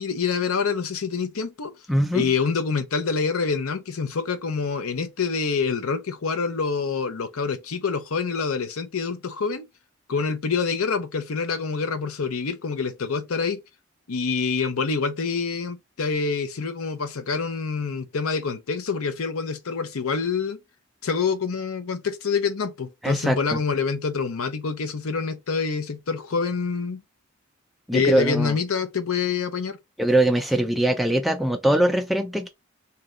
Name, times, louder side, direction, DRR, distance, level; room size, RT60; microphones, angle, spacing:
voice 1, 0.0-1.7 2.1-9.7 10.1-13.6 14.1-20.6 21.0-27.0 27.9-29.8, left 5 dB, 90° left, 0.6 m, -26 dB
voice 2, 1.9-2.3 23.0-23.6 27.9-28.5 30.0-32.5, right 1 dB, ahead, 0.4 m, -22 dB
3.3 x 2.8 x 3.7 m
head